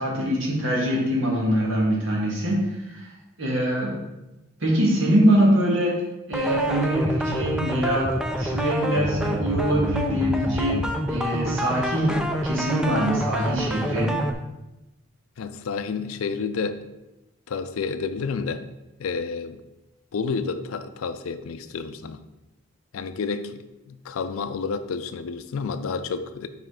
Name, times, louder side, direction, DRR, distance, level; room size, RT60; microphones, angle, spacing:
voice 1, 0.0-3.1 3.4-4.0 4.6-6.0 6.3-14.1, right 1 dB, 65° right, -3 dB, 1.7 m, -23 dB
sound 1, 6.3-14.3, equal, 5° right, 0.3 m, -27 dB
voice 2, 15.4-16.9 17.5-18.7 19.0-19.6 20.1-22.2 22.9-26.5, left 5 dB, 85° left, 11 dB, 0.4 m, -30 dB
5.5 x 5.0 x 3.6 m, 0.98 s
head